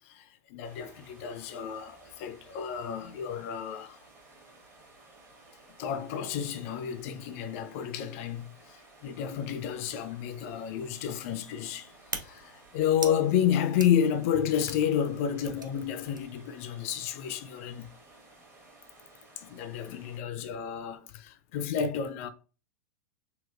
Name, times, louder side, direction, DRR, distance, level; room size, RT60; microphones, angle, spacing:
voice 1, 0.0-4.0 5.8-11.9 12.2-17.9 19.4-22.3, left 8 dB, 45° left, 0.4 m, -31 dB
sound 1, 0.6-20.2, right 2 dB, 25° right, 1.2 m, -56 dB
sound 2, 10.2-16.5, right 3 dB, 85° right, 0.5 m, -45 dB
3.5 x 2.4 x 2.4 m
figure-of-eight pair, 90°, 10 cm